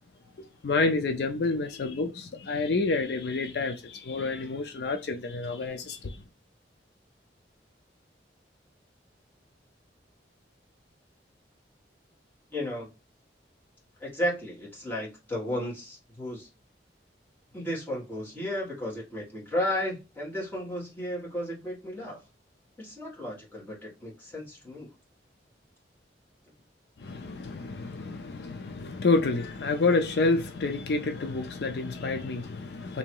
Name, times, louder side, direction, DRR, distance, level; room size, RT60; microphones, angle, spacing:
voice 1, 0.4-6.2 27.0-33.0, left 3 dB, 60° left, 0.4 m, -29 dB
voice 2, 12.5-12.9 14.0-16.5 17.5-22.2 22.8-24.9, left 1 dB, 10° left, 1.6 m, -34 dB
3.0 x 2.8 x 4.5 m
head